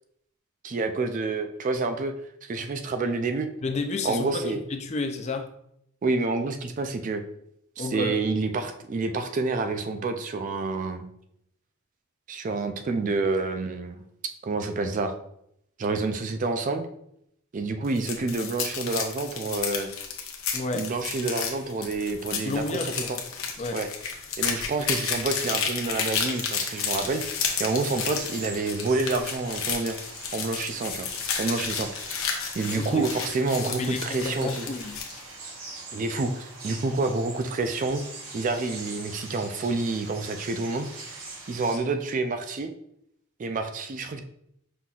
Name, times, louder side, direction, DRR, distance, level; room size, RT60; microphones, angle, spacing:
voice 1, 0.6-2.1 2.4-3.5 4.0-4.6 6.0-7.2 7.8-11.0 12.3-14.0 14.4-15.1 15.8-16.9 17.5-19.9 20.7-23.2 23.7-23.9 24.4-27.2 27.6-30.0 30.3-31.1 31.4-31.9 32.6-34.7 35.9-38.0 38.3-41.2 41.5-42.7 43.4-44.2, right 3 dB, 35° right, 6 dB, 0.3 m, -28 dB
voice 2, 3.6-5.5 7.8-8.2 20.5-20.9 22.4-23.1 23.6-23.8 32.7-33.1 33.8-35.0, left 3 dB, 30° left, 5 dB, 0.5 m, -31 dB
sound 1, 17.8-35.2, left 6 dB, 70° left, 0.8 m, -32 dB
sound 2, 26.1-41.8, right 3 dB, 70° right, 1.1 m, -43 dB
5.7 x 3.8 x 2.4 m, 0.74 s
head